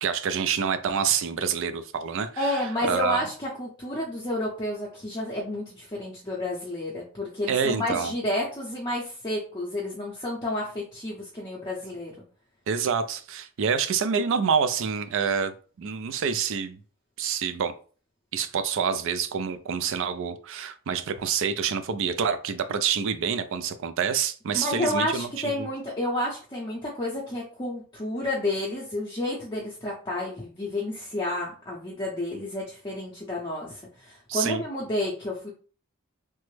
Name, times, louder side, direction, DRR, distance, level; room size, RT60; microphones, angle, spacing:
voice 1, 0.0-2.6 2.9-3.2 7.5-8.1 12.7-16.8 17.2-17.7 18.3-25.7 34.3-34.6, right 6 dB, 60° right, 0.4 m, -27 dB
voice 2, 2.4-12.1 24.5-35.5, left 1 dB, 20° left, 0.6 m, -30 dB
3.2 x 2.0 x 3.1 m
head